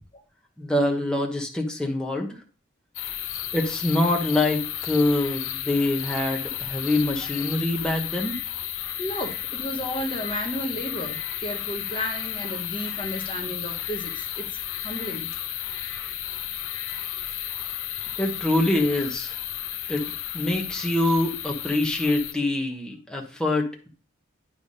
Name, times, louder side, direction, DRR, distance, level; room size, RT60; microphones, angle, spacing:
voice 1, 0.6-2.4 3.5-8.4 18.2-19.4 19.9-23.9, left 2 dB, 5° left, -1 dB, 1.1 m, -25 dB
sound 1, 3.0-22.3, left 11 dB, 85° left, 0.7 m, -33 dB
voice 2, 9.0-14.6 14.8-15.3, equal, 25° left, 2 dB, 1.0 m, -33 dB
10.5 x 3.5 x 5.3 m, 0.38 s
head